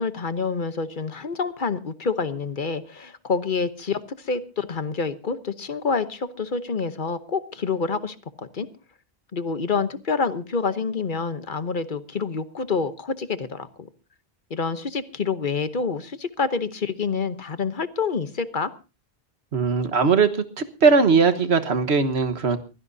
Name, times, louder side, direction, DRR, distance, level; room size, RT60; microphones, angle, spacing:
voice 1, 0.0-8.7 9.3-13.9 14.5-18.7, left 5 dB, 50° left, 11 dB, 1.1 m, -27 dB
voice 2, 19.5-20.3 20.6-22.6, right 5 dB, 90° right, 10 dB, 1.6 m, -19 dB
22.5 x 16.0 x 2.7 m, 0.32 s
omnidirectional pair, 1.1 m